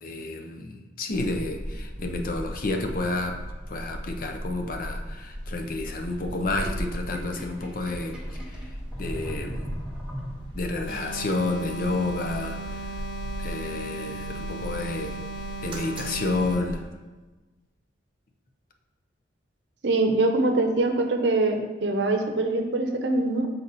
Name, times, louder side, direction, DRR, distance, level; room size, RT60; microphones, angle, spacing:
voice 1, 0.0-3.4 3.7-8.2 8.5-8.7 9.0-9.7 10.5-12.8 13.4-15.2 15.6-16.8, left 2 dB, 50° left, 3 dB, 0.6 m, -30 dB
sound 1, 1.1-16.9, equal, 25° right, 0.9 m, -37 dB
Sink (filling or washing), 7.0-10.8, equal, 5° right, 0.9 m, -39 dB
sound 2, 10.9-16.8, right 2 dB, 70° left, 2.0 m, -37 dB
voice 2, 19.8-23.5, right 2 dB, 65° right, 4 dB, 0.7 m, -23 dB
6.8 x 4.2 x 4.0 m, 1.2 s
head